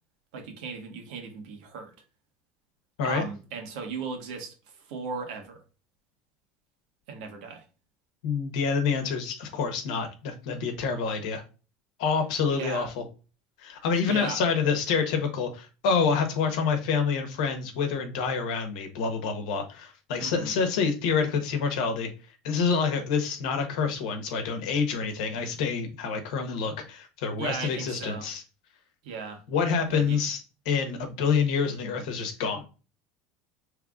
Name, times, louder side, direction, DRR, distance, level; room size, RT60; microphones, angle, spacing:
voice 1, 0.3-1.9 3.0-5.6 7.1-7.6 12.5-12.9 14.1-14.4 20.2-20.5 27.4-28.3 29.0-29.4 29.9-30.2, right 5 dB, 85° right, 3 dB, 1.2 m, -37 dB
voice 2, 8.2-11.4 12.0-13.0 13.6-22.1 22.4-28.4 29.5-30.4 30.6-32.6, left 5 dB, 85° left, 6 dB, 1.0 m, -27 dB
4.9 x 3.3 x 2.4 m, 0.33 s
cardioid pair, 155°, 4 cm